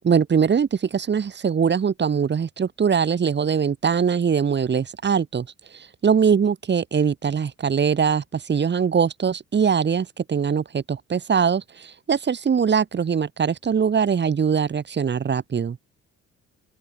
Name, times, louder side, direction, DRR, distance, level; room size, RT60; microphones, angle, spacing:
voice 1, 0.0-5.5 5.7-15.8, right 6 dB, 35° right, 1.2 m, -22 dB
open air
cardioid pair, 90°, 30 cm